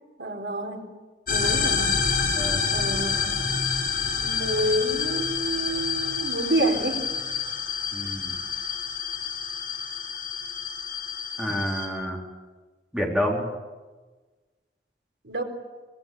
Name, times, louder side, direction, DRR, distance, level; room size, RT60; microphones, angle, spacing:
voice 1, 0.2-0.9 1.3-2.0 2.7-3.4 4.1-7.1 15.2-15.4, right 1 dB, 85° right, 3 dB, 4.1 m, -28 dB
sound 1, 1.3-11.9, left 6 dB, 55° left, 7.1 m, -28 dB
voice 2, 7.9-8.4 11.4-12.2 12.9-13.5, equal, 5° right, -2 dB, 4.1 m, -28 dB
25.0 x 21.0 x 8.8 m, 1.3 s
head